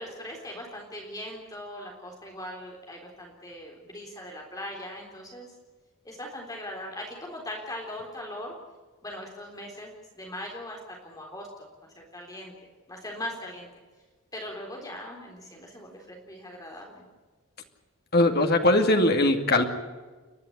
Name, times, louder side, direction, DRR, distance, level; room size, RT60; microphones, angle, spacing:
voice 1, 0.0-5.5 6.0-8.6 9.0-12.5 12.9-13.7 14.3-17.0, left 1 dB, 15° left, 0 dB, 3.8 m, -40 dB
voice 2, 18.1-19.6, left 1 dB, 45° left, 4 dB, 2.4 m, -20 dB
30.0 x 11.5 x 9.8 m, 1.3 s
head